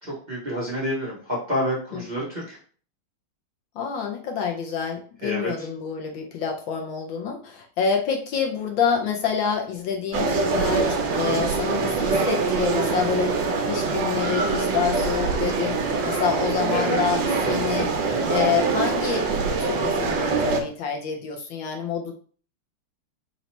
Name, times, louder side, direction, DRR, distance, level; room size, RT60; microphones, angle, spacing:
voice 1, 0.0-2.6 5.2-5.7 11.1-11.4 16.7-17.0, equal, 25° right, -6 dB, 1.0 m, -29 dB
voice 2, 3.7-19.3 19.6-22.1, left 7 dB, 70° left, 2 dB, 1.4 m, -27 dB
sound 1, 10.1-20.6, right 4 dB, 65° right, 1.3 m, -24 dB
4.1 x 2.8 x 4.3 m, 0.43 s
omnidirectional pair, 2.4 m